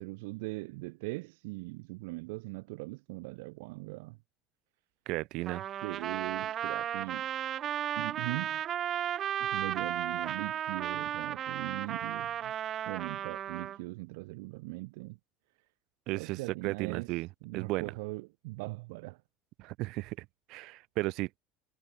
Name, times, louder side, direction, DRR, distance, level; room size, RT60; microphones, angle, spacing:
voice 1, 0.0-4.2 5.8-7.3 8.0-8.6 9.4-12.5 12.9-15.2 16.2-17.1 17.4-19.2, right 25 dB, 90° right, 3.0 m, -40 dB
voice 2, 5.1-5.6 16.1-18.0 19.6-21.3, right 21 dB, 60° right, 7.2 m, -35 dB
Trumpet, 5.5-13.8, right 10 dB, 35° right, 2.7 m, -34 dB
cardioid pair, 150°, 0 cm